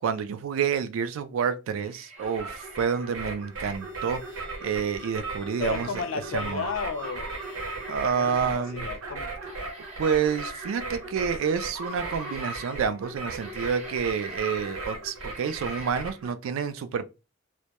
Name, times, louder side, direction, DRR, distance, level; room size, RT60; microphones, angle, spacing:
voice 1, 0.0-6.0 6.3-6.7 7.9-8.9 10.0-17.1, right 6 dB, 70° right, 0.3 m, -29 dB
sound 1, 1.7-3.4 4.3-5.2 6.4-6.5 7.0-8.7 9.4-11.2 11.7-12.9 13.2-15.9, right 1 dB, 35° right, 0.7 m, -44 dB
sound 2, 2.2-16.3, right 2 dB, 90° right, 0.8 m, -37 dB
sound 3, 3.4-8.3, right 2 dB, 5° left, 0.4 m, -47 dB
voice 2, 5.6-7.4 8.1-9.3, left 5 dB, 70° left, 0.3 m, -33 dB
2.1 x 2.1 x 2.8 m
head